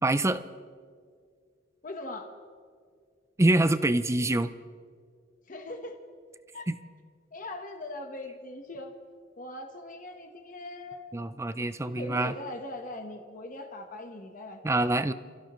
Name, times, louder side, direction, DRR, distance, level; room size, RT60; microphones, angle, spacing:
voice 1, 0.0-0.4 3.4-4.5 6.7-6.8 11.1-12.3 14.6-15.1, right 2 dB, 15° right, 12 dB, 0.5 m, -25 dB
voice 2, 1.8-2.3 5.5-5.9 6.5-6.7 7.3-8.9 9.4-11.0 11.9-14.6, left 2 dB, 45° left, 3 dB, 1.3 m, -40 dB
28.0 x 16.0 x 3.1 m, 2.1 s
head